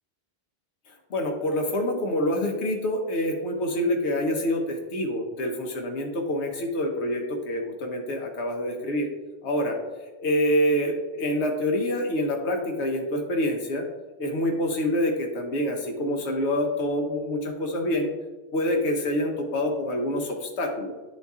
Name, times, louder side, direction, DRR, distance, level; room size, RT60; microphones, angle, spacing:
voice 1, 1.1-9.1 9.4-9.8 10.2-13.9 14.2-18.1 18.5-20.9, left 1 dB, 85° left, 2 dB, 1.1 m, -26 dB
11.0 x 4.0 x 2.4 m, 1.3 s
omnidirectional pair, 1.1 m